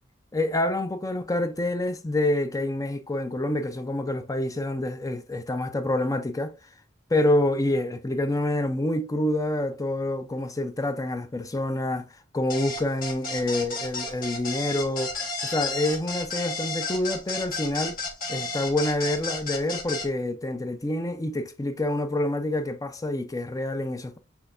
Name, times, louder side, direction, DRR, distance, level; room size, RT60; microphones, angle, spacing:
voice 1, 0.3-6.5 7.1-12.1 12.3-15.1 15.4-18.0 18.3-24.2, left 1 dB, 20° left, 0.5 m, -27 dB
sound 1, 12.5-20.1, left 3 dB, 50° left, 1.6 m, -32 dB
6.1 x 3.5 x 2.5 m
head